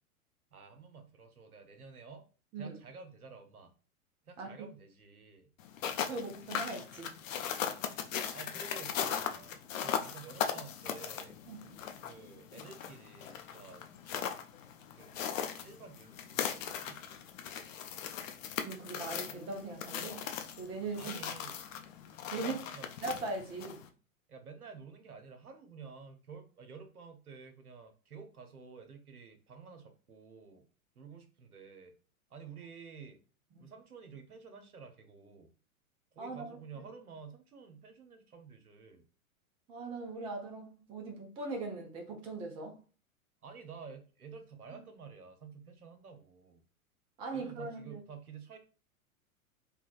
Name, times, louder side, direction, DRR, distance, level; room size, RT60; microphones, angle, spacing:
voice 1, 0.5-2.2 2.6-3.7 4.2-5.5 7.6-7.9 8.3-11.4 12.0-14.3 14.9-15.2 15.4-17.0 21.0-21.6 22.3-22.8 24.3-30.6 31.0-32.0 32.3-33.2 33.6-35.5 36.1-39.1 43.4-46.6 47.3-48.6, right 5 dB, 90° right, 0.7 m, -51 dB
voice 2, 4.4-4.7 6.0-7.1 11.5-11.8 18.6-20.3 20.6-21.2 22.3-22.6 23.0-23.8 33.5-33.7 36.2-36.4 39.7-42.8 47.2-48.0, right 3 dB, 15° right, 0.3 m, -40 dB
sound 1, 5.6-23.9, left 8 dB, 60° left, 0.6 m, -39 dB
3.2 x 2.2 x 2.4 m
figure-of-eight pair, 95°, 43 cm